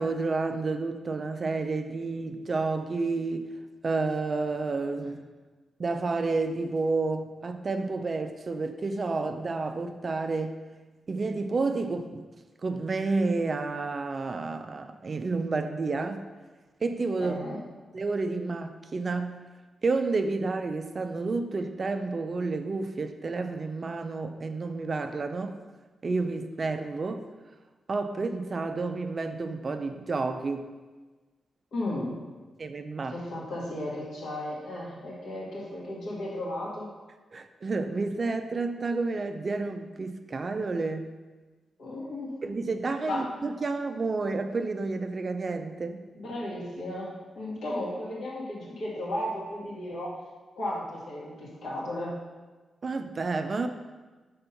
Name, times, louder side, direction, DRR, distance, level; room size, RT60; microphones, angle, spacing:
voice 1, 0.0-3.5 3.8-5.2 5.8-10.6 11.1-12.3 12.6-16.3 16.8-17.4 17.9-19.4 19.8-25.6 26.0-27.2 27.9-30.7 32.6-33.2 37.3-41.1 42.4-46.0 52.8-53.7, right 3 dB, 35° right, 8 dB, 0.3 m, -30 dB
voice 2, 17.2-17.6 31.7-32.2 33.1-36.9 41.8-42.4 43.0-43.2 46.1-50.1 50.6-52.2, left 1 dB, 75° left, -5 dB, 1.8 m, -34 dB
5.4 x 3.4 x 5.7 m, 1.3 s
wide cardioid pair, 170°, 0 cm